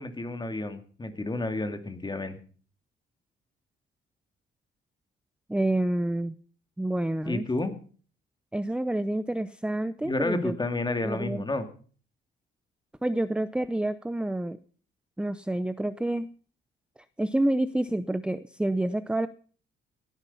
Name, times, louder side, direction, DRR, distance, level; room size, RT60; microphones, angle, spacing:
voice 1, 0.0-2.4 7.2-7.7 10.0-11.7, left 2 dB, 20° left, 9 dB, 2.4 m, -30 dB
voice 2, 5.5-6.3 6.8-7.5 8.5-10.6 11.0-11.4 13.0-14.6 15.2-16.3 17.2-19.3, right 1 dB, 5° right, 14 dB, 0.6 m, -28 dB
17.5 x 11.0 x 5.6 m, 0.43 s
cardioid pair, 90°, 20 cm